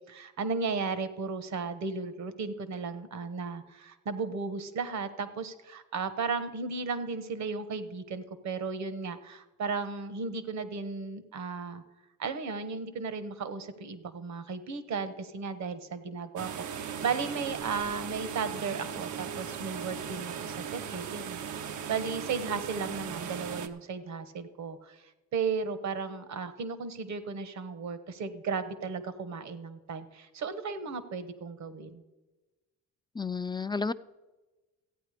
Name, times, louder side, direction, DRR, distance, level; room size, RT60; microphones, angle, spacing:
voice 1, 0.1-11.8 12.2-25.0 25.3-32.0, right 5 dB, 65° right, 12 dB, 1.3 m, -35 dB
sound 1, 16.4-23.7, right 7 dB, 80° right, 0.9 m, -38 dB
voice 2, 33.2-33.9, left 4 dB, 15° left, 13 dB, 0.4 m, -31 dB
15.0 x 9.0 x 5.1 m, 1.1 s
cardioid pair, 90°, 30 cm